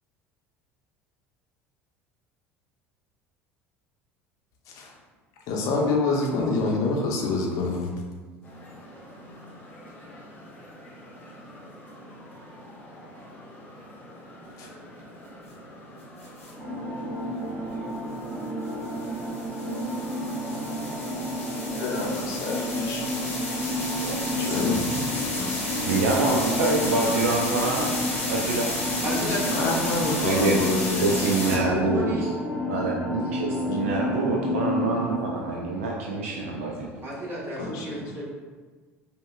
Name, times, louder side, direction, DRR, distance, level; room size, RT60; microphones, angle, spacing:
voice 1, 5.5-8.0 14.6-14.7 17.6-17.7 20.0-20.2 21.7-23.0 24.4-25.5 29.1-31.2 37.6-38.2, left 3 dB, 50° left, -1 dB, 0.6 m, -28 dB
sound 1, 8.4-27.9, equal, 20° left, 1.0 m, -46 dB
sound 2, 16.2-16.5 18.6-31.5, left 2 dB, 85° left, 0.9 m, -32 dB
sound 3, 16.6-35.2, equal, 15° right, 1.1 m, -31 dB
voice 2, 24.0-25.0 25.9-27.9 28.3-28.7 30.2-30.6 31.0-32.1 32.7-36.9, right 3 dB, 70° right, -1 dB, 0.4 m, -26 dB
voice 3, 29.0-32.3 37.0-38.3, right 1 dB, 35° right, -5 dB, 1.3 m, -33 dB
5.1 x 2.2 x 2.2 m, 1.4 s
figure-of-eight pair, 65°, 7 cm